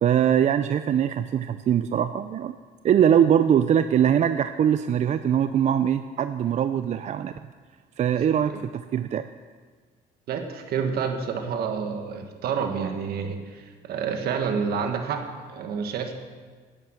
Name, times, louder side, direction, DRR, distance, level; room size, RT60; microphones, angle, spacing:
voice 1, 0.0-2.5 2.8-7.3 8.0-9.2, right 9 dB, 45° right, 11 dB, 0.4 m, -22 dB
voice 2, 10.3-16.1, right 6 dB, 65° right, 5 dB, 1.6 m, -29 dB
10.5 x 9.3 x 7.4 m, 1.5 s
cardioid pair, 110°, 17 cm